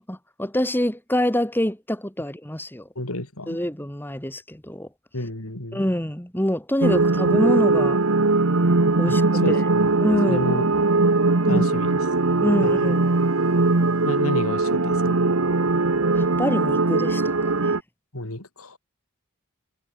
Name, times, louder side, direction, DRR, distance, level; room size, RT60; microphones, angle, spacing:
voice 1, 0.0-2.9 3.5-4.9 5.7-8.0 9.0-9.2 9.5-9.6 10.0-10.4 11.5-11.6 12.4-13.0 16.1-17.8, equal, 10° left, 2.7 m, -26 dB
voice 2, 2.9-3.6 5.1-5.8 9.1-9.9 10.3-10.7 11.5-12.0 12.6-12.9 14.0-15.2 18.1-18.8, left 1 dB, 80° left, 4.6 m, -31 dB
sound 1, 6.8-17.8, right 3 dB, 70° right, 1.2 m, -20 dB
head